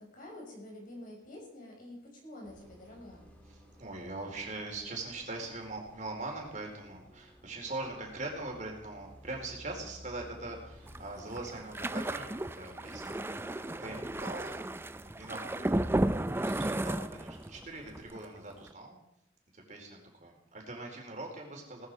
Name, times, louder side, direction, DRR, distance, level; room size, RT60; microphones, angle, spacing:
voice 1, 0.0-3.3 15.5-16.0, left 1 dB, 50° left, 0 dB, 5.5 m, -48 dB
Bus, 2.4-18.0, equal, 10° left, 2.9 m, -56 dB
voice 2, 3.5-14.6 15.2-15.7 16.0-16.1 16.4-19.0 19.5-21.9, right 2 dB, 40° right, 0 dB, 4.2 m, -42 dB
sound 1, 10.9-17.6 17.9-18.2 18.5-18.7, right 1 dB, 15° right, 0.5 m, -34 dB
18.5 x 14.0 x 4.9 m, 0.83 s
head